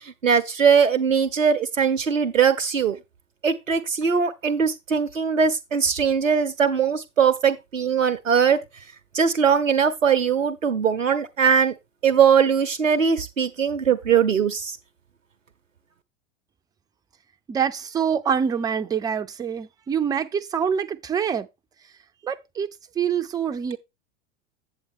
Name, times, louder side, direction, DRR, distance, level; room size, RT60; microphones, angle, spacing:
voice 1, 0.0-3.0 3.4-8.6 9.1-11.7 12.0-14.8, right 7 dB, 85° right, 0.7 m, -20 dB
voice 2, 17.5-21.5 22.2-22.7 23.0-23.8, right 7 dB, 10° right, 0.4 m, -25 dB
8.3 x 7.3 x 3.5 m
figure-of-eight pair, 85°, 38 cm